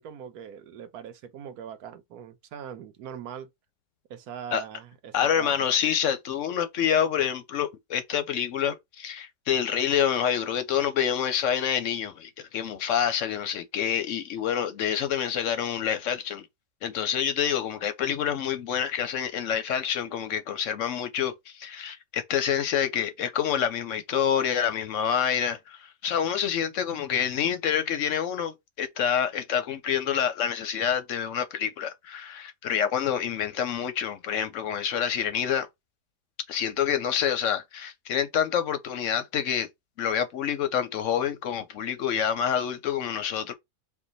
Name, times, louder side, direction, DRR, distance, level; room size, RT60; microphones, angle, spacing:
voice 1, 0.0-3.5 4.1-5.5, right 8 dB, 70° right, 1.2 m, -41 dB
voice 2, 5.1-16.5 16.8-35.7 36.5-39.7 40.0-43.5, left 8 dB, 65° left, 0.8 m, -27 dB
4.6 x 2.2 x 4.0 m
omnidirectional pair, 1.7 m